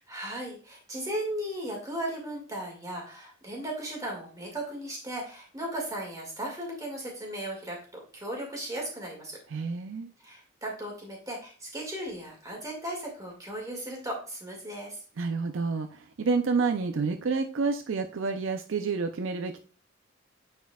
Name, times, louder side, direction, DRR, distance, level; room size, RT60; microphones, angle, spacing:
voice 1, 0.0-7.8 8.1-9.4 10.2-15.0, right 1 dB, 15° right, -1 dB, 2.0 m, -36 dB
voice 2, 9.5-10.1 15.2-19.6, right 4 dB, 70° right, 6 dB, 0.5 m, -29 dB
9.2 x 4.4 x 2.3 m, 0.39 s
head